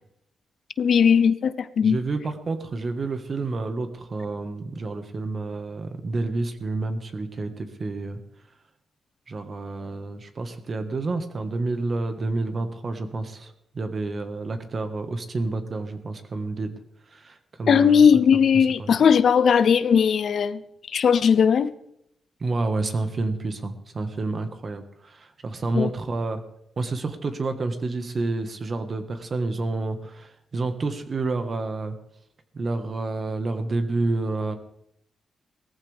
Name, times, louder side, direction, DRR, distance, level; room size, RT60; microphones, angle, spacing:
voice 1, 0.8-2.0 17.7-20.6 20.9-21.7 25.7-25.9, left 7 dB, 65° left, 14 dB, 0.6 m, -18 dB
voice 2, 1.8-8.2 9.3-16.8 17.1-18.0 18.5-18.9 22.4-26.4 26.8-32.0 32.5-34.6, right 3 dB, 40° right, 8 dB, 1.5 m, -29 dB
18.0 x 14.5 x 3.5 m, 0.75 s
cardioid pair, 105°, 0 cm